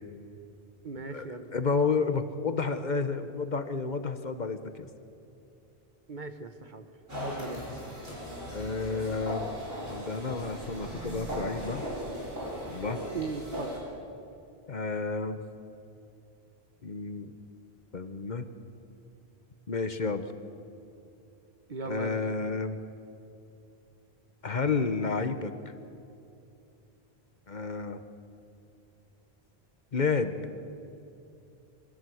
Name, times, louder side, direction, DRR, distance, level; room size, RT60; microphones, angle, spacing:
voice 1, 0.8-1.5 6.1-6.9 7.2-7.7 13.1-14.0 21.7-22.2, right 4 dB, 50° right, 8 dB, 1.2 m, -38 dB
voice 2, 1.5-4.9 8.5-9.5 9.9-11.8 12.7-13.0 14.7-15.4 16.8-17.3 17.9-18.4 19.7-20.3 21.9-22.8 24.4-25.5 27.5-28.0 29.9-30.4, left 4 dB, 45° left, 9 dB, 1.0 m, -30 dB
sound 1, 7.1-13.8, equal, 65° right, 5.5 m, -38 dB
24.5 x 15.5 x 7.8 m, 2.7 s
omnidirectional pair, 1.1 m